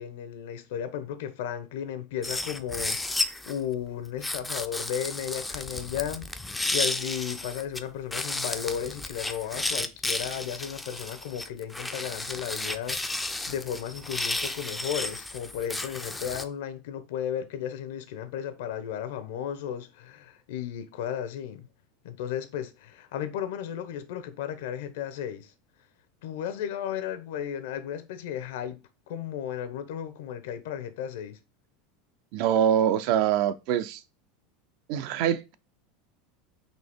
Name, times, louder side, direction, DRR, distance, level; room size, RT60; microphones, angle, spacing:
voice 1, 0.0-21.7 22.0-25.5 26.2-28.8 29.1-31.4, left 9 dB, 80° left, 0.7 m, -34 dB
sound 1, 2.2-3.6 4.2-7.8 8.1-16.4, left 2 dB, 5° left, 0.3 m, -33 dB
voice 2, 32.3-34.0 34.9-35.6, right 9 dB, 55° right, 0.4 m, -24 dB
4.1 x 2.8 x 3.5 m
supercardioid pair, 155°, 0 cm